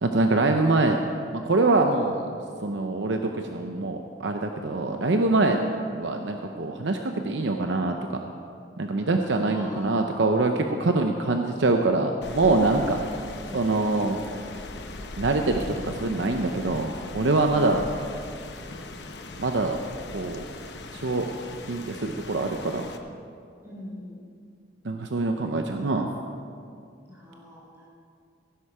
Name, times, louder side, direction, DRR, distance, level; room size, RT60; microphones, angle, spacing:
voice 1, 0.0-1.0 1.4-2.3 2.6-5.6 5.9-8.2 8.8-13.0 13.5-14.2 15.2-17.8 19.4-19.8 20.1-20.4 20.9-21.3 21.7-22.9 24.8-26.1, right 2 dB, 75° right, 4 dB, 0.7 m, -24 dB
voice 2, 9.5-10.1 13.2-13.7 17.5-17.8 23.6-24.2 27.1-27.9, left 1 dB, 15° right, -4 dB, 3.3 m, -42 dB
Rain, 12.2-23.0, left 2 dB, 65° left, 0.9 m, -40 dB
16.5 x 10.0 x 4.9 m, 2.3 s
head